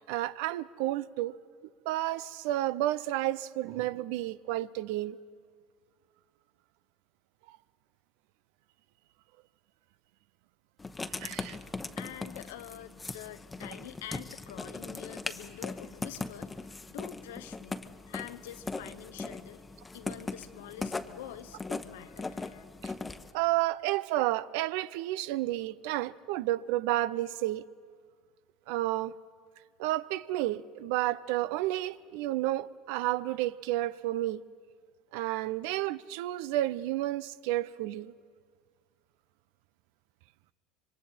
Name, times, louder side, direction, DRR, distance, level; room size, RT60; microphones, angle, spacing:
voice 1, 0.1-1.3 1.8-5.2 7.5-7.6 11.2-11.6 22.8-22.9 23.3-27.7 28.7-29.1 29.8-34.4 35.1-38.1, right 15 dB, 75° right, 0.5 m, -31 dB
Writing, 10.8-23.3, left 3 dB, 15° left, 1.0 m, -40 dB
voice 2, 12.0-17.8 18.1-19.6 19.9-22.6, left 12 dB, 85° left, 0.8 m, -46 dB
26.0 x 23.5 x 4.4 m
hypercardioid pair, 85°, 0 cm